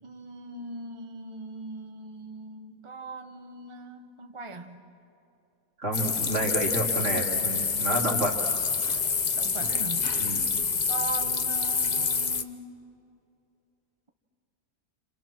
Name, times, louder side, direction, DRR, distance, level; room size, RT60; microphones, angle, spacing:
voice 1, 0.0-4.8 9.3-10.1 10.9-12.8, right 3 dB, 25° right, 4 dB, 0.9 m, -40 dB
voice 2, 5.8-8.4 10.2-10.5, right 1 dB, 55° right, -1 dB, 3.2 m, -29 dB
sound 1, 5.9-12.4, left 5 dB, 35° left, 0.8 m, -27 dB
28.5 x 27.0 x 6.1 m, 2.7 s
omnidirectional pair, 1.5 m